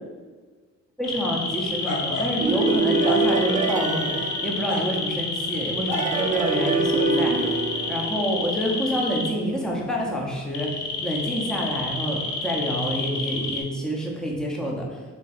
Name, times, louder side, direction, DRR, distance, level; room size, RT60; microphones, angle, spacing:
sound 1, 1.0-13.6, left 3 dB, 85° left, 0.8 m, -29 dB
voice 1, 1.0-7.6 7.9-15.0, equal, ahead, -2 dB, 1.0 m, -28 dB
sound 2, 2.4-5.3 5.9-8.8, right 3 dB, 25° right, 0.5 m, -25 dB
3.7 x 3.3 x 4.2 m, 1.4 s
cardioid pair, 90°, 30 cm